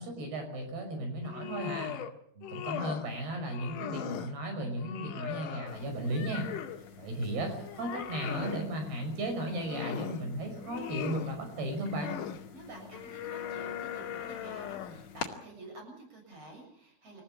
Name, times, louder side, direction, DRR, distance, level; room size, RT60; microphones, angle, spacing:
voice 1, 0.0-1.9 2.4-6.5 7.0-12.1, right 1 dB, 75° right, 4 dB, 7.5 m, -35 dB
sound 1, 1.2-2.1 2.4-3.1 3.5-4.3 4.8-6.8 7.3-8.7 9.3-10.2 10.6-11.3 11.8-12.4 12.9-15.1, left 9 dB, 65° left, 2.7 m, -39 dB
sound 2, 5.7-15.3, left 6 dB, 50° left, 3.0 m, -49 dB
voice 2, 12.5-17.2, right 2 dB, 40° right, 2 dB, 8.3 m, -49 dB
28.5 x 15.5 x 8.8 m, 0.69 s
omnidirectional pair, 4.6 m